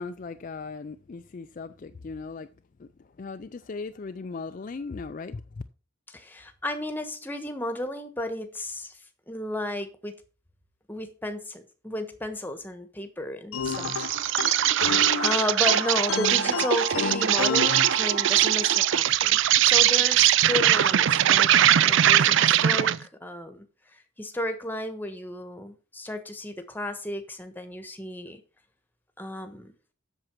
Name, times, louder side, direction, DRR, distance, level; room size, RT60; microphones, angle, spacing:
voice 1, 0.0-2.5 2.8-5.4, left 4 dB, 40° left, 0.4 m, -38 dB
voice 2, 6.1-9.0 9.3-10.1 10.9-14.1 14.4-14.7 15.2-23.7 23.9-28.4 29.2-29.7, left 1 dB, 10° left, 1.2 m, -33 dB
sound 1, 13.5-18.6, left 6 dB, 85° left, 0.6 m, -31 dB
Insect, 13.7-23.0, right 11 dB, 60° right, 0.4 m, -21 dB
7.9 x 7.0 x 6.0 m
head